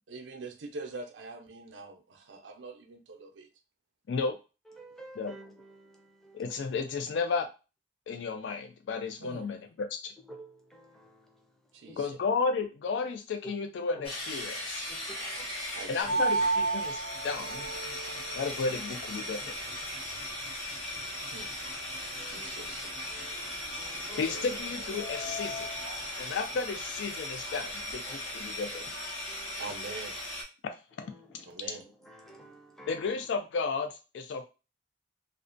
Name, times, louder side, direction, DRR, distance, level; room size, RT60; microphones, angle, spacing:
voice 1, 0.1-3.5 9.2-9.5 11.7-12.1 15.7-16.3 21.2-21.5 22.2-22.9 29.6-30.2 31.4-31.8, right 3 dB, 85° right, 0.5 m, -44 dB
voice 2, 4.8-5.5 5.8-6.0 6.2-6.4 10.3-11.2 11.9-12.0 14.9-15.4 22.2-22.5 23.1-24.2 29.3-29.5 32.1-32.9, right 1 dB, ahead, 0.4 m, -50 dB
voice 3, 6.3-7.5 8.1-10.1 12.0-14.9 15.9-17.0 17.2-17.6 18.3-19.5 24.2-25.7 26.2-29.0 31.0-31.1 32.9-34.5, left 4 dB, 75° left, 0.3 m, -33 dB
sound 1, 14.0-30.4, left 1 dB, 30° left, 0.8 m, -38 dB
sound 2, 16.0-27.9, right 3 dB, 55° left, 1.1 m, -37 dB
2.4 x 2.1 x 2.5 m
head